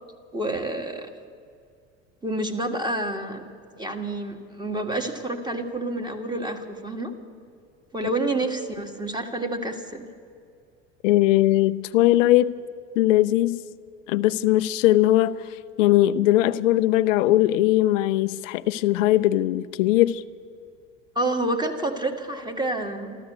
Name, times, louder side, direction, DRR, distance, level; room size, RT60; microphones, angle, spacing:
voice 1, 0.3-1.1 2.2-3.5 3.8-7.1 7.9-10.1 21.1-23.2, right 2 dB, 10° right, 5 dB, 1.7 m, -28 dB
voice 2, 11.0-12.6 13.0-13.6 14.1-15.4 15.8-20.2, left 15 dB, 80° left, 12 dB, 0.6 m, -20 dB
13.5 x 13.5 x 7.9 m, 2.2 s
hypercardioid pair, 95°, 38 cm